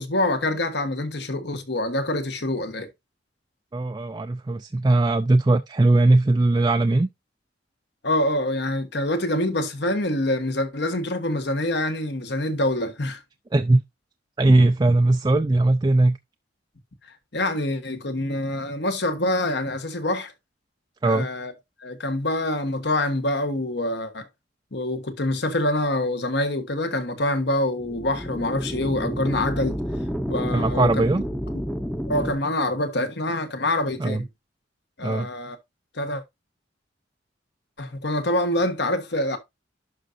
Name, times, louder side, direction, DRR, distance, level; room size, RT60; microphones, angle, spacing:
voice 1, 0.0-2.9 8.0-13.2 17.3-20.3 21.0-21.5 21.8-24.3 24.7-29.8 30.3-31.0 32.1-34.3 35.0-35.6 35.9-36.2 37.8-39.4, left 1 dB, 60° left, 1.4 m, -25 dB
voice 2, 3.7-7.1 13.5-13.8 14.4-16.2 21.0-21.3 30.5-31.2 34.0-34.2 35.0-35.3, right 2 dB, 20° right, 0.4 m, -19 dB
sound 1, 27.8-32.4, equal, 5° left, 0.7 m, -30 dB
11.5 x 5.1 x 2.6 m
head